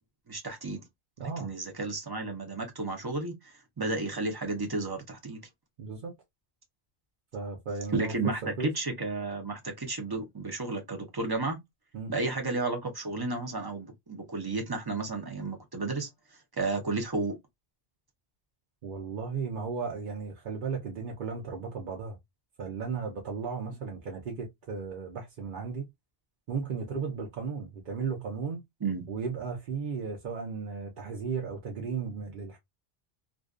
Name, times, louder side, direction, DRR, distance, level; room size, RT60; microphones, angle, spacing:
voice 1, 0.3-0.8 1.2-5.4 7.9-11.6 12.1-16.1 16.6-17.3 28.8-29.0, right 3 dB, 30° right, 0.4 m, -32 dB
voice 2, 1.2-1.5 5.8-6.1 7.3-8.1 8.6-8.7 11.9-12.1 18.8-22.2 22.6-25.9 26.5-28.6 29.1-32.6, right 5 dB, 60° right, 0.7 m, -35 dB
2.5 x 2.2 x 2.3 m
omnidirectional pair, 1.0 m